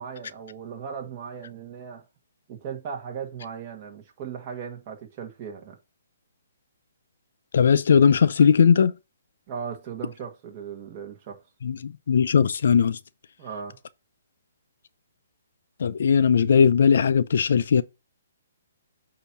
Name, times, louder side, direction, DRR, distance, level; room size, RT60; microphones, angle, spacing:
voice 1, 0.0-2.0 2.5-5.8 9.5-11.4 13.4-13.8, right 7 dB, 30° right, 1.6 m, -37 dB
voice 2, 7.5-8.9 11.6-13.0 15.8-17.8, left 6 dB, 60° left, 0.6 m, -19 dB
8.5 x 2.9 x 6.0 m
hypercardioid pair, 165°, 0 cm